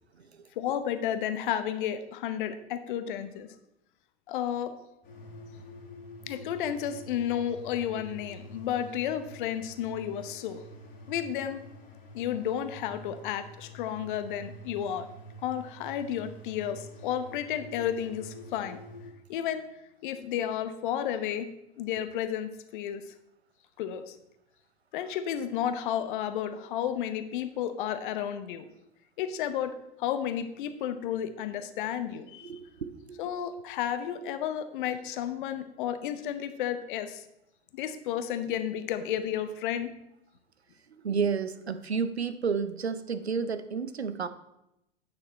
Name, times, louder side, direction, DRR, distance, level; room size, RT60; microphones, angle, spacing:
voice 1, 0.6-3.6 4.3-4.7 6.3-10.6 11.1-11.6 12.1-15.1 15.4-18.8 19.3-19.6 20.0-21.5 21.8-23.0 23.8-24.2 24.9-28.7 29.2-32.5 33.2-37.2 37.7-39.9, left 10 dB, 50° left, 11 dB, 0.8 m, -32 dB
sound 1, 5.0-19.1, left 1 dB, 25° left, 2.5 m, -47 dB
voice 2, 32.4-33.3 40.9-44.3, right 6 dB, 85° right, 12 dB, 0.6 m, -31 dB
8.8 x 6.4 x 4.2 m, 0.86 s
figure-of-eight pair, 90°, 31 cm